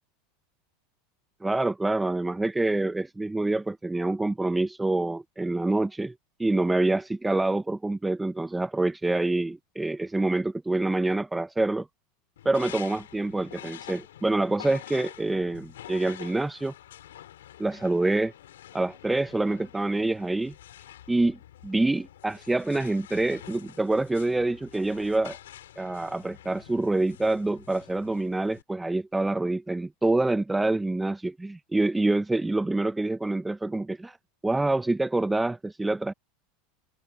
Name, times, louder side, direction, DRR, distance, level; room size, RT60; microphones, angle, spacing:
voice 1, 1.4-6.1 6.4-11.9 12.4-16.7 17.6-18.3 18.7-20.5 21.1-25.4 25.8-34.2 34.4-36.1, right 2 dB, 10° right, 0.9 m, -26 dB
sound 1, 12.4-28.6, left 12 dB, 80° left, 3.9 m, -47 dB
hypercardioid pair, 95°, 0 cm